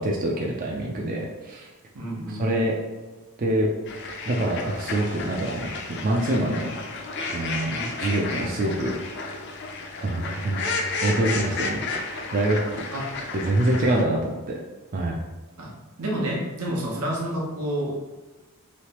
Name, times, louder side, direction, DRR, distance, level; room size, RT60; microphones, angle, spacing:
voice 1, 0.0-1.7 2.3-2.7 3.4-3.7 4.3-6.7 7.3-7.7 8.0-8.9 10.0-10.6 11.0-12.6 13.3-14.6 14.9-15.2, right 1 dB, 40° right, -1 dB, 0.4 m, -25 dB
voice 2, 1.9-2.4 6.4-6.6 7.6-7.9 12.9-13.1 13.7-13.8 15.6-15.7 16.0-17.9, right 1 dB, 90° right, -2 dB, 1.0 m, -29 dB
sound 1, 3.9-14.0, left 3 dB, 50° left, 0.4 m, -32 dB
3.2 x 3.1 x 2.9 m, 1.2 s
head